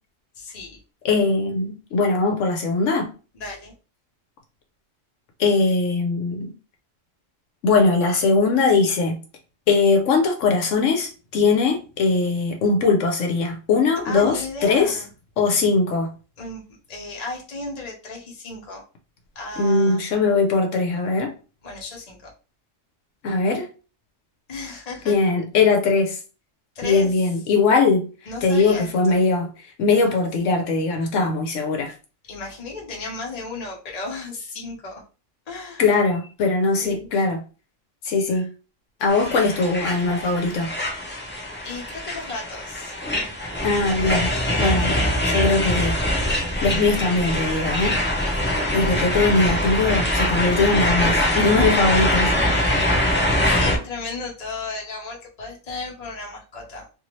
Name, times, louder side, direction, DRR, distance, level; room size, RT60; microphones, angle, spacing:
voice 1, 0.3-0.8 3.3-3.7 14.0-15.1 16.4-16.6 16.9-18.8 19.3-20.0 21.6-22.3 24.5-25.2 26.7-27.2 28.3-29.2 32.3-35.0 35.5-35.8 36.8-37.1 38.3-38.4 41.6-43.2 53.3-56.9, left 3 dB, 35° left, 0.9 m, -34 dB
voice 2, 1.0-3.1 5.4-6.5 7.6-9.2 9.7-15.0 15.4-16.1 19.6-21.3 23.2-23.7 25.1-26.2 26.8-28.1 28.4-29.5 29.8-31.9 35.8-37.4 38.0-38.5 39.0-40.7 43.6-45.0 45.2-46.0 46.6-48.0 48.7-52.9, left 4 dB, 75° left, 1.0 m, -20 dB
sound 1, 39.1-53.8, left 1 dB, 10° left, 0.5 m, -23 dB
2.7 x 2.6 x 3.0 m
omnidirectional pair, 1.3 m